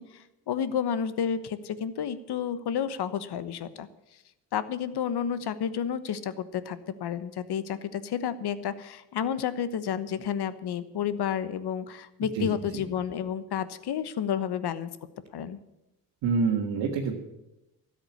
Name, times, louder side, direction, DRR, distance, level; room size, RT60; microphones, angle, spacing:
voice 1, 0.0-3.9 4.5-14.9 15.3-15.6, left 8 dB, 65° left, 14 dB, 1.2 m, -31 dB
voice 2, 16.2-17.1, right 5 dB, 85° right, -1 dB, 1.7 m, -26 dB
13.0 x 7.9 x 9.6 m, 0.93 s
supercardioid pair, 55°, 43 cm